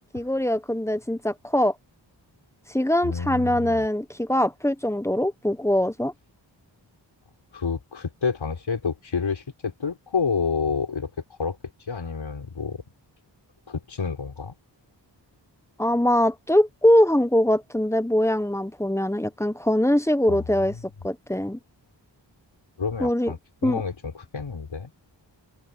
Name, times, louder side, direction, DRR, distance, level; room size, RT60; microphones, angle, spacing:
voice 1, 0.1-1.7 2.7-6.1 15.8-20.8 21.0-21.6 23.0-23.3 23.6-23.8, left 1 dB, 5° left, 1.2 m, -22 dB
voice 2, 3.0-3.9 7.5-11.1 11.4-11.6 11.9-12.8 13.7-14.5 20.3-20.5 20.7-20.8 22.8-24.9, left 5 dB, 85° left, 5.1 m, -29 dB
wide cardioid pair, 65°, 45 cm